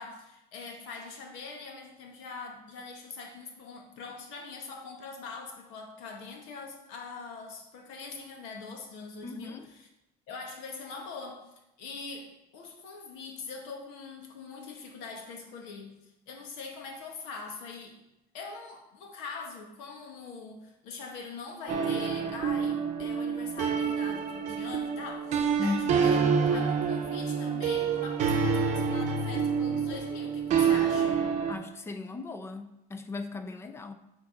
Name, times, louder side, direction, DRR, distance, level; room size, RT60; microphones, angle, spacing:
voice 1, 0.0-9.9 10.3-11.4 11.8-18.0 18.3-31.2, left 4 dB, 85° left, 2 dB, 1.6 m, -43 dB
voice 2, 9.2-9.7 25.6-26.0 31.5-33.9, left 3 dB, 15° left, 8 dB, 0.4 m, -36 dB
sound 1, 21.7-31.5, right 6 dB, 40° right, 0.8 m, -27 dB
8.5 x 3.9 x 5.1 m, 0.90 s
cardioid pair, 180°, 19 cm